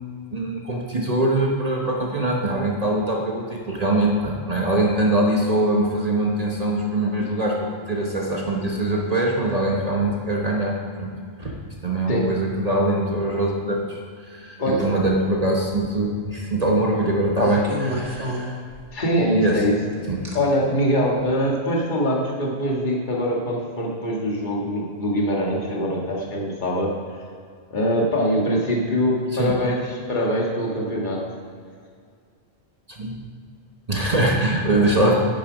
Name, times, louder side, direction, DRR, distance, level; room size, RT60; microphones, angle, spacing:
voice 1, 0.3-11.1 11.4-11.6 11.8-14.0 14.3-18.5 19.3-19.6 20.1-20.2 29.4-29.6 32.9-33.2 33.9-35.1, right 1 dB, 35° right, -1 dB, 1.3 m, -23 dB
voice 2, 14.6-14.9 18.9-19.7 20.3-27.2 27.7-31.2, equal, 40° left, -3 dB, 2.0 m, -23 dB
sound 1, 15.9-16.0 17.3-19.1 20.2-20.4 21.2-21.4, equal, 75° right, 2.0 m, -31 dB
10.5 x 10.0 x 5.1 m, 2.2 s
omnidirectional pair, 1.2 m